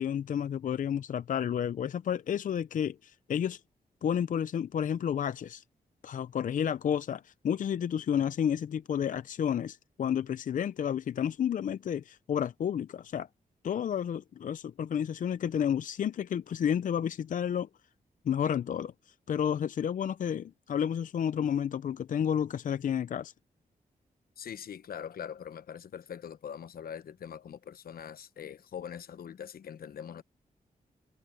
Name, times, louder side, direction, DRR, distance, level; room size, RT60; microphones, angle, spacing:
voice 1, 0.0-3.6 4.0-5.6 6.0-13.3 13.6-17.7 18.3-23.3, left 8 dB, 60° left, 0.4 m, -31 dB
voice 2, 24.4-30.2, left 8 dB, 80° left, 1.0 m, -42 dB
wide cardioid pair, 110°, 15 cm